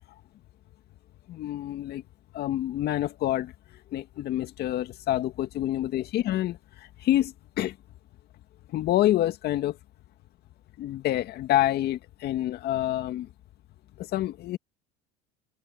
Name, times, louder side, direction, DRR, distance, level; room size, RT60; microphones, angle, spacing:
voice 1, 1.3-2.0 2.3-3.5 3.9-7.8 8.7-9.8 10.8-13.3 14.0-14.6, left 14 dB, 55° left, 2.1 m, -27 dB
supercardioid pair, 90°, 20 cm